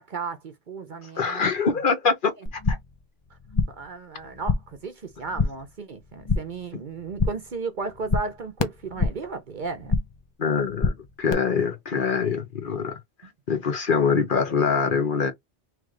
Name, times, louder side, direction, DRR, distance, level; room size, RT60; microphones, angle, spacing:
voice 1, 0.0-1.7 3.7-9.9, right 4 dB, 50° right, 0.8 m, -35 dB
voice 2, 1.2-2.8 10.4-13.0 13.5-15.3, left 5 dB, 50° left, 1.1 m, -24 dB
sound 1, 2.5-3.0 3.3-3.9 4.2-4.8 5.1-5.7 6.0-6.7 6.9-7.6 7.8-9.3 9.6-10.3 10.5-11.3, left 4 dB, 35° left, 0.5 m, -27 dB
3.3 x 3.2 x 3.7 m
omnidirectional pair, 1.1 m